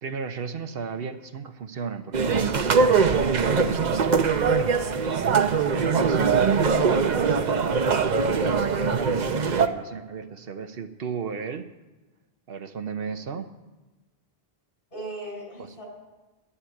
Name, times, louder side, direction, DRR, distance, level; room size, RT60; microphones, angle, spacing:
voice 1, 0.0-4.8 5.7-7.4 8.2-11.7 12.5-13.5, right 6 dB, 70° right, 9 dB, 1.0 m, -34 dB
sound 1, 2.1-9.7, right 5 dB, 50° right, 0.8 m, -22 dB
voice 2, 14.9-15.8, right 1 dB, 55° left, -2 dB, 5.7 m, -38 dB
11.0 x 10.0 x 8.5 m, 1.2 s
omnidirectional pair, 1.0 m